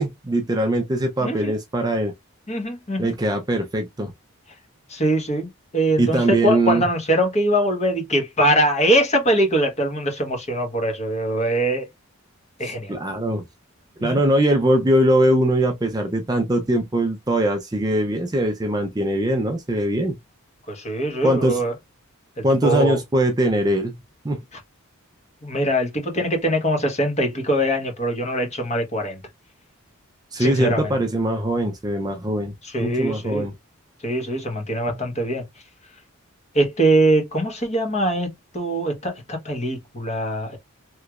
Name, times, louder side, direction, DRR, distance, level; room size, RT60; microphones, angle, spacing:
voice 1, 0.0-2.1 3.0-4.1 6.0-6.8 12.6-13.4 14.0-20.2 21.2-21.6 22.4-23.9 24.2-24.4 30.3-32.5 32.8-33.5, right 1 dB, 20° right, 0.5 m, -21 dB
voice 2, 1.2-1.5 2.5-3.1 4.9-11.9 12.6-12.9 14.0-14.2 20.7-21.7 22.4-23.0 25.4-29.2 30.4-30.9 32.6-33.5 34.0-35.4 36.5-40.6, right 1 dB, 30° left, 1.2 m, -22 dB
3.1 x 3.1 x 2.3 m
head